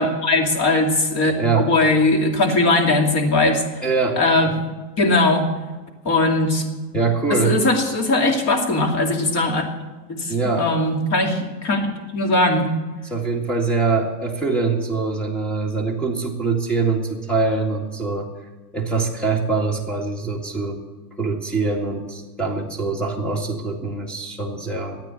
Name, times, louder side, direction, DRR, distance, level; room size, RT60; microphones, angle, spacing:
voice 1, 0.0-3.6 4.2-4.5 5.0-5.5 6.0-6.6 7.3-9.6 10.1-12.7, left 2 dB, 30° left, 4 dB, 2.5 m, -19 dB
voice 2, 1.4-1.7 3.8-4.2 6.9-7.6 10.3-10.7 13.1-18.3 18.7-20.8 21.2-25.0, right 4 dB, ahead, 2 dB, 2.0 m, -23 dB
13.5 x 9.1 x 8.8 m, 1.2 s
supercardioid pair, 145°, 50 cm